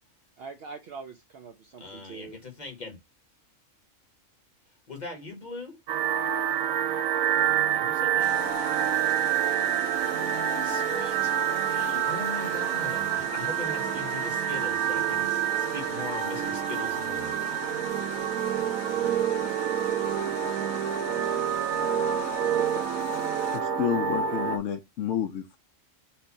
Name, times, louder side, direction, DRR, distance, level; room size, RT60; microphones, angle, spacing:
voice 1, 0.4-2.4, right 4 dB, 60° right, 0.6 m, -43 dB
voice 2, 1.8-3.0 4.9-5.7 7.7-8.3 10.6-11.3 11.7-17.4, left 3 dB, 35° left, 1.5 m, -40 dB
sound 1, 5.9-24.6, right 10 dB, 85° right, 1.0 m, -27 dB
sound 2, 8.2-23.6, left 8 dB, 90° left, 1.2 m, -42 dB
voice 3, 23.5-25.6, left 10 dB, 70° left, 0.9 m, -30 dB
4.4 x 2.6 x 4.1 m
omnidirectional pair, 1.4 m